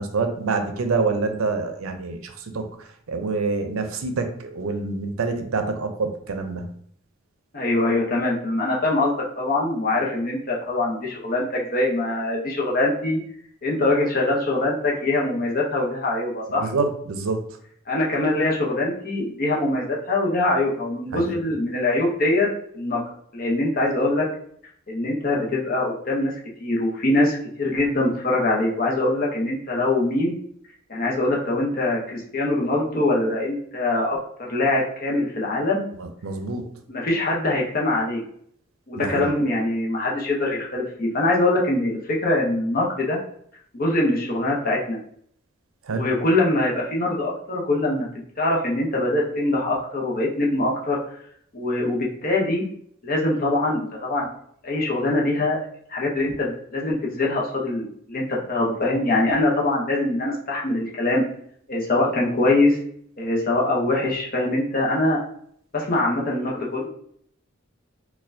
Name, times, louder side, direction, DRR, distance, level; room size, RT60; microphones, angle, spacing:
voice 1, 0.0-6.7 16.6-17.4 21.1-21.4 36.0-36.7 39.0-39.3 45.9-46.2, right 4 dB, 90° right, 6 dB, 0.5 m, -27 dB
voice 2, 7.5-13.2 13.6-16.7 17.9-22.5 22.7-23.0 23.3-24.3 24.9-26.3 26.6-30.3 30.9-35.8 36.9-38.2 38.9-43.2 43.7-45.0 45.9-48.1 48.4-51.0 51.5-52.6 53.0-54.3 54.6-55.6 55.9-61.2 61.7-62.8 63.2-65.2 65.7-66.9, left 2 dB, 45° left, -2 dB, 0.8 m, -23 dB
4.1 x 2.3 x 2.6 m, 0.65 s
head